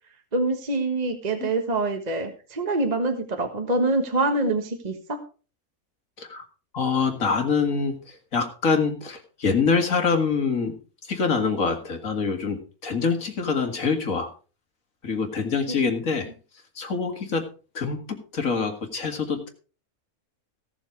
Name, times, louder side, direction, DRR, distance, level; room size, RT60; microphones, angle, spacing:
voice 1, 0.3-5.2 15.7-15.8, right 2 dB, 30° right, 6 dB, 1.5 m, -25 dB
voice 2, 6.7-10.8 11.1-14.3 15.0-16.3 16.8-17.5 17.7-19.5, left 5 dB, 70° left, 6 dB, 2.5 m, -25 dB
17.0 x 7.4 x 4.7 m, 0.36 s
omnidirectional pair, 1.5 m